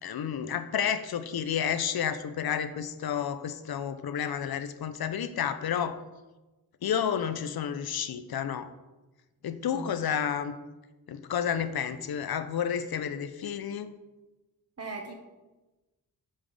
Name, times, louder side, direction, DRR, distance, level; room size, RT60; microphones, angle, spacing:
voice 1, 0.0-6.0 6.8-8.7 9.4-10.5 11.1-13.9, left 8 dB, 70° left, 11 dB, 0.6 m, -31 dB
voice 2, 14.8-15.1, right 2 dB, 40° right, 2 dB, 1.3 m, -38 dB
8.8 x 5.6 x 3.4 m, 1.1 s
wide cardioid pair, 120°, 39 cm